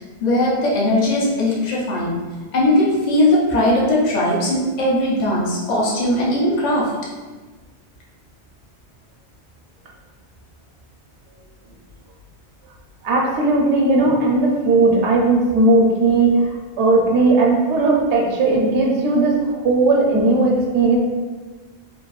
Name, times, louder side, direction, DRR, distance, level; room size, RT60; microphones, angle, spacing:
voice 1, 0.0-2.2 2.5-6.9, left 1 dB, 50° left, -5 dB, 0.6 m, -19 dB
voice 2, 13.0-16.5 16.8-21.0, right 2 dB, 80° right, -1 dB, 0.9 m, -17 dB
2.6 x 2.3 x 2.3 m, 1.3 s
omnidirectional pair, 1.2 m